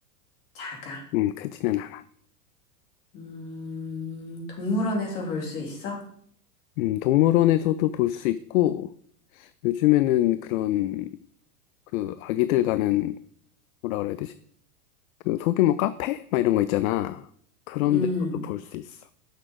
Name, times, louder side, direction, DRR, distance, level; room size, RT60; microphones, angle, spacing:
voice 1, 0.5-1.0 3.1-6.0 17.9-18.4, left 2 dB, 50° left, 0 dB, 3.2 m, -31 dB
voice 2, 1.1-2.0 6.8-8.9 9.3-11.1 11.9-13.2 13.8-14.3 15.2-17.3 17.7-18.1 18.4-19.0, left 14 dB, 65° left, 15 dB, 0.5 m, -24 dB
6.5 x 6.2 x 4.9 m, 0.65 s
hypercardioid pair, 110°, 46 cm